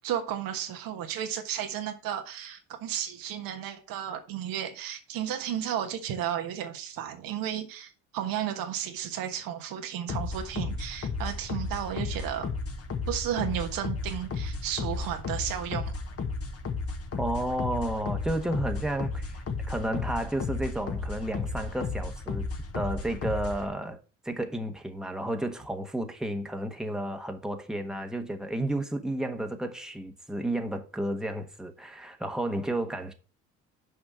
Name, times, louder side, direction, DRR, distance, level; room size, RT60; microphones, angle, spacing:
voice 1, 0.0-12.5 13.1-15.9, right 10 dB, 65° right, 1.4 m, -33 dB
sound 1, 10.1-23.7, left 4 dB, 40° left, 1.6 m, -34 dB
voice 2, 17.2-22.5 22.7-24.0 24.2-33.1, right 1 dB, ahead, 1.3 m, -32 dB
6.4 x 5.1 x 6.1 m
hypercardioid pair, 70°, 37 cm